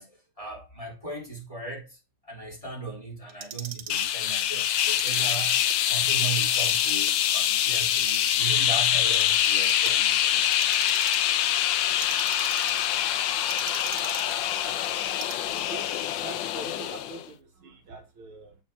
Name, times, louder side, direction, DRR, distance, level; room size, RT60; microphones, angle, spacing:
voice 1, 0.0-2.0 2.2-5.6 5.9-10.4, right 4 dB, 15° left, 3.8 m, -37 dB
Clock, 3.3-4.1 4.8-5.8 6.2-7.1 7.6-8.6 9.1-9.9 10.4-11.3 11.8-12.9 13.5-14.4 15.1-15.7, right 8 dB, 90° right, 2.0 m, -39 dB
sound 1, 3.9-17.2, left 11 dB, 70° left, 1.2 m, -25 dB
voice 2, 14.7-15.0 15.5-15.9 16.2-18.6, right 3 dB, 70° right, 2.2 m, -44 dB
7.8 x 4.5 x 5.8 m
omnidirectional pair, 2.4 m